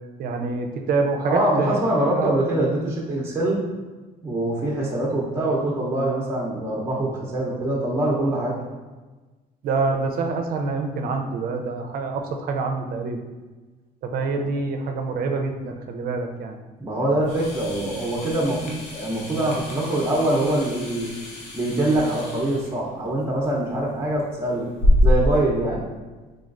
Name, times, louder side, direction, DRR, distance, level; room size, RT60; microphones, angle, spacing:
voice 1, 0.2-1.8 2.1-2.3 9.6-13.2 14.0-16.6, right 4 dB, 60° right, 4 dB, 0.5 m, -26 dB
voice 2, 1.2-3.6 4.2-8.6 14.3-14.5 16.8-21.1 21.5-24.7 25.0-25.8, right 1 dB, 15° right, -5 dB, 0.8 m, -24 dB
sound 1, 17.2-25.4, left 1 dB, 85° left, 0.8 m, -27 dB
3.9 x 3.1 x 2.5 m, 1.2 s
cardioid pair, 110°, 17 cm